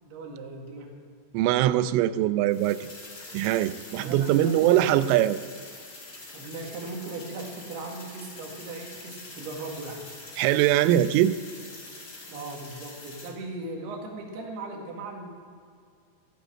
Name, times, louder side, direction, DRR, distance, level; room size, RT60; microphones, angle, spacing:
voice 1, 0.0-0.9 3.9-4.9 6.3-10.1 12.3-15.3, right 3 dB, 60° right, 1 dB, 3.6 m, -38 dB
voice 2, 1.3-2.9 3.3-5.4 10.4-11.3, right 13 dB, 85° right, 14 dB, 3.1 m, -22 dB
sound 1, 2.5-13.3, left 2 dB, 55° left, 0.9 m, -45 dB
14.0 x 10.5 x 7.6 m, 2.2 s
omnidirectional pair, 5.6 m